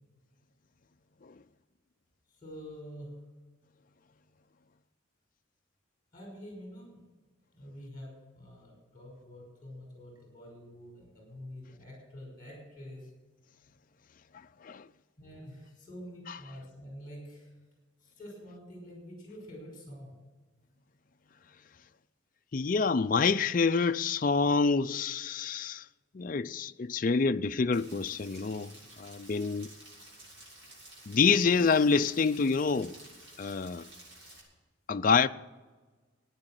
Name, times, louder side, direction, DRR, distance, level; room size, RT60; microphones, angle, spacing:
voice 1, 2.3-3.1 6.1-7.0 7.5-13.1 15.2-17.5 18.0-20.2, equal, 20° left, 5.4 m, -47 dB
voice 2, 22.5-25.8 26.1-28.7 29.0-29.7 31.1-32.9 33.4-33.9 34.9-35.3, left 5 dB, 40° left, 0.4 m, -27 dB
Rain, 27.7-34.4, right 1 dB, 70° right, 6.7 m, -52 dB
16.0 x 9.8 x 7.8 m
head